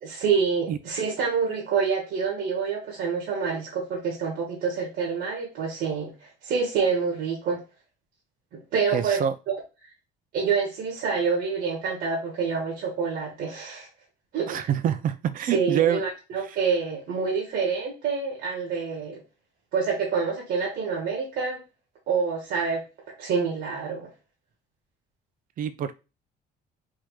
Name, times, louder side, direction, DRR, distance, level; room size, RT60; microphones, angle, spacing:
voice 1, 0.0-7.6 8.5-9.2 10.3-13.9 14.3-14.6 15.5-19.2 19.7-21.6 22.1-22.8 23.2-24.1, right 5 dB, 70° right, -1 dB, 1.5 m, -27 dB
voice 2, 8.9-9.3 14.5-16.0 16.5-16.6 25.6-25.9, right 9 dB, 55° right, 12 dB, 0.6 m, -26 dB
3.6 x 2.8 x 4.7 m, 0.29 s
cardioid pair, 110°, 17 cm